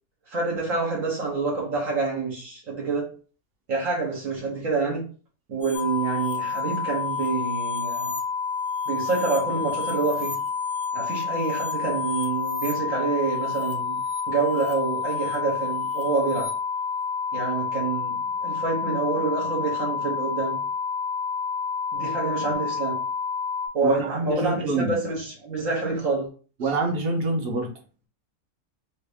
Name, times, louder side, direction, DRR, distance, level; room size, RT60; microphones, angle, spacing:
voice 1, 0.3-3.1 3.7-5.0 5.5-8.1 8.9-10.4 10.9-14.0 14.3-16.5 17.3-20.6 21.9-23.0 23.7-26.3, right 4 dB, 65° right, 1.4 m, -27 dB
sound 1, 5.6-8.2 8.5-12.7 13.3-16.5, left 3 dB, ahead, 0.8 m, -44 dB
sound 2, 5.7-23.7, left 5 dB, 70° left, 1.0 m, -29 dB
voice 2, 23.8-24.9 26.6-27.7, right 3 dB, 45° right, 0.9 m, -26 dB
3.1 x 2.5 x 3.4 m
omnidirectional pair, 1.5 m